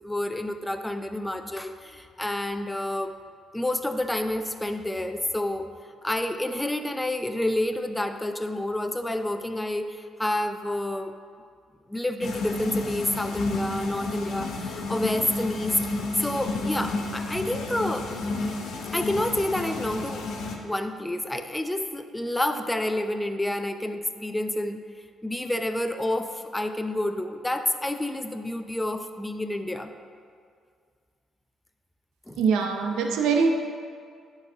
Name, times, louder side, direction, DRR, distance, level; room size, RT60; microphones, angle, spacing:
voice 1, 0.0-3.2 3.5-5.7 6.0-11.1 11.9-15.8 16.2-18.1 18.9-20.2 20.6-24.8 25.2-29.9 32.3-32.4, left 1 dB, 10° left, 7 dB, 0.5 m, -29 dB
sound 1, 12.2-20.6, left 2 dB, 75° left, 0.8 m, -31 dB
voice 2, 32.4-33.5, right 5 dB, 90° right, 2 dB, 0.7 m, -23 dB
10.5 x 4.0 x 3.9 m, 2.2 s
cardioid pair, 90°, 0 cm